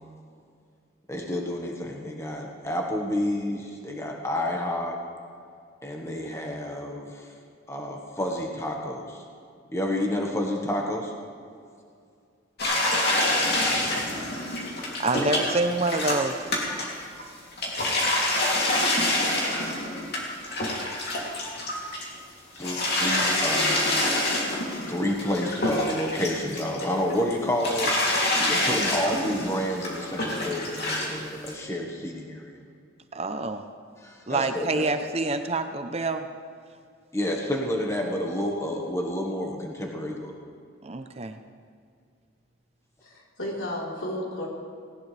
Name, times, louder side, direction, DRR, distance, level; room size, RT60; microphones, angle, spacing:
voice 1, 1.1-5.0 5.8-7.2 7.7-9.2 9.7-11.1 22.6-23.9 24.9-27.9 28.5-32.5 34.0-34.9 37.1-40.3, left 1 dB, 15° left, 0 dB, 1.5 m, -29 dB
sound 1, 12.6-17.2 17.5-22.2 22.6-27.3 27.6-31.2 31.5-31.6, left 1 dB, 50° left, 2.9 m, -26 dB
voice 2, 15.0-16.4 33.1-33.6 34.3-36.3 40.8-41.4, right 2 dB, 30° right, 7 dB, 0.7 m, -27 dB
voice 3, 43.0-44.5, left 1 dB, 85° left, -4 dB, 4.1 m, -33 dB
19.0 x 18.5 x 3.4 m, 2.3 s
head